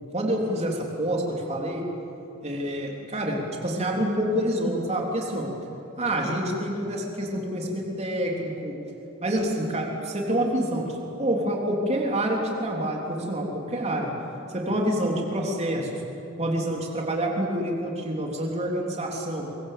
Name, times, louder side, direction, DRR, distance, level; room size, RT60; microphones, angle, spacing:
voice 1, 0.1-1.8 2.4-5.5 6.0-8.7 9.2-14.1 14.5-15.9 16.4-19.5, right 1 dB, 30° right, -1 dB, 3.6 m, -27 dB
24.0 x 23.5 x 7.7 m, 3.0 s
head